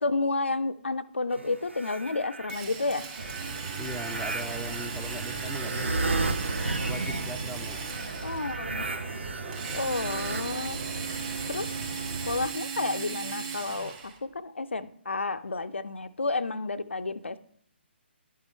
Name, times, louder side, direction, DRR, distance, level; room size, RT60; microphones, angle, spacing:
voice 1, 0.0-3.1 8.2-8.9 9.7-10.8 11.5-11.7 12.2-17.4, left 3 dB, 75° left, 11 dB, 0.4 m, -31 dB
sound 1, 1.3-2.6 3.1-10.4, right 3 dB, 75° right, 0.6 m, -34 dB
Drill, 2.5-8.6 9.5-14.2, right 5 dB, 35° right, 2.0 m, -38 dB
sound 2, 3.2-12.5, right 3 dB, 55° right, 1.0 m, -38 dB
voice 2, 3.8-6.2 6.9-7.8, right 1 dB, ahead, 2 dB, 0.3 m, -40 dB
10.5 x 3.7 x 4.2 m, 0.65 s
figure-of-eight pair, 135°, 6 cm